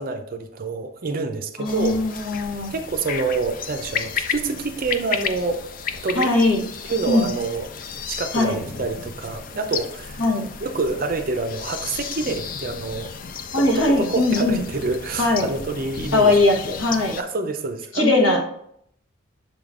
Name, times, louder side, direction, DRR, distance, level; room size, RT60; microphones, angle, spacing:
voice 1, 0.0-5.6 6.0-6.3 6.8-7.7 8.1-10.2 10.6-13.1 13.6-16.3 17.2-18.4, right 3 dB, 45° right, 0.5 m, -27 dB
voice 2, 1.6-2.7 6.1-6.6 7.1-7.3 8.3-8.6 10.2-10.4 13.5-14.6 15.2-15.5 16.1-17.1 17.9-18.4, left 2 dB, 75° left, 1.4 m, -20 dB
sound 1, 1.6-17.2, left 6 dB, 40° left, 0.4 m, -33 dB
7.0 x 3.7 x 3.6 m
head